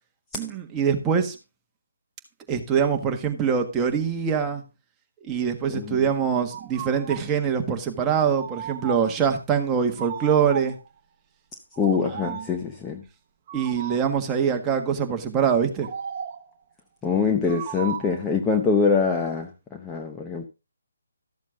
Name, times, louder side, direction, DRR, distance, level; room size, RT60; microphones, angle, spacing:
voice 1, 0.3-1.3 2.5-4.6 5.2-10.8 12.3-12.4 13.5-15.9, right 7 dB, 15° right, 1.5 m, -24 dB
voice 2, 5.7-6.0 11.8-13.0 17.0-20.5, left 5 dB, 10° left, 0.9 m, -24 dB
sound 1, 6.5-7.3 8.3-9.2 10.0-10.9 11.7-12.6 13.5-14.2 15.8-16.5 17.5-18.3, right 8 dB, 35° right, 1.0 m, -35 dB
13.0 x 7.3 x 3.8 m
figure-of-eight pair, 150°, 0 cm